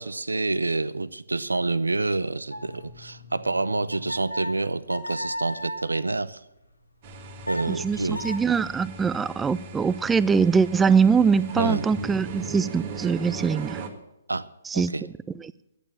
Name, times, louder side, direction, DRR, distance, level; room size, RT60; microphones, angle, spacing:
voice 1, 0.0-6.4 7.5-8.3 11.6-11.8 14.3-14.5 14.7-15.1, right 3 dB, 80° right, 0.6 m, -27 dB
sound 1, 2.5-5.9 7.1-8.4, equal, 85° left, 1.9 m, -36 dB
sound 2, 7.0-13.9, right 4 dB, 40° right, 1.7 m, -38 dB
voice 2, 7.7-13.8 14.7-14.9, right 5 dB, 10° right, 0.4 m, -22 dB
11.5 x 8.6 x 8.8 m
figure-of-eight pair, 130°, 0 cm